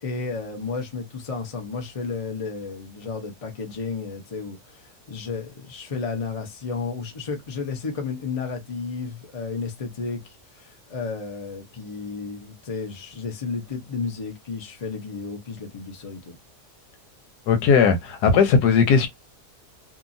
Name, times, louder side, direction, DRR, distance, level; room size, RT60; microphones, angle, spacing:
voice 1, 0.0-16.4, left 4 dB, 35° left, 0.6 m, -32 dB
voice 2, 17.5-19.1, left 5 dB, 85° left, 1.3 m, -17 dB
2.8 x 2.5 x 2.6 m
omnidirectional pair, 1.7 m